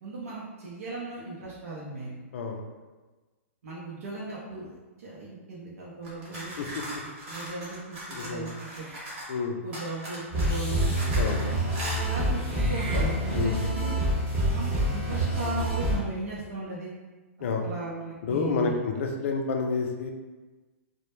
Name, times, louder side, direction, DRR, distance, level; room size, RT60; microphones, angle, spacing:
voice 1, 0.0-2.1 3.6-6.5 7.3-8.9 9.6-10.9 12.0-14.0 14.5-16.9 17.6-18.8, right 3 dB, 85° right, -6 dB, 0.6 m, -37 dB
sound 1, 6.0-9.4 9.7-11.4 11.7-12.0, right 1 dB, 60° right, 1.0 m, -39 dB
voice 2, 8.1-8.5 9.3-9.6 11.2-11.4 13.3-13.7 17.4-17.6 18.2-20.1, left 4 dB, 65° left, 3 dB, 0.4 m, -29 dB
Meow / Hiss, 8.6-9.2 10.4-11.1 12.4-13.6, equal, 15° left, 0.8 m, -40 dB
sound 2, 10.3-16.0, equal, 20° right, 0.8 m, -27 dB
2.1 x 2.0 x 3.0 m, 1.3 s
hypercardioid pair, 155°, 8 cm